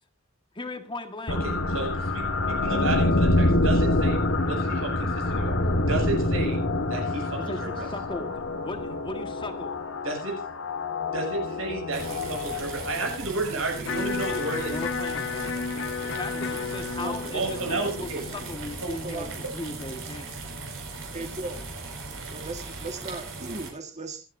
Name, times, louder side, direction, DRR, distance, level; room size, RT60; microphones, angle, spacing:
voice 1, 0.5-1.4 7.5-9.8 14.7-20.5, left 2 dB, 25° left, 6 dB, 1.7 m, -38 dB
sound 1, 1.3-13.2, left 2 dB, 80° left, 1.8 m, -26 dB
voice 2, 1.3-2.2 2.6-4.2 4.5-5.6 5.8-6.6 6.9-7.9 10.0-10.4 11.1-14.7 17.3-18.2 18.8-18.9, right 3 dB, 90° right, 1 dB, 6.9 m, -31 dB
sound 2, 11.9-23.7, right 3 dB, 70° right, 5.2 m, -38 dB
Electric guitar, 13.8-19.9, left 5 dB, 60° left, 0.6 m, -33 dB
voice 3, 17.0-17.7 18.4-18.5 19.0-19.5 21.1-21.6 22.3-24.3, right 2 dB, 35° right, 4 dB, 1.6 m, -37 dB
26.5 x 9.6 x 2.7 m, 0.30 s
head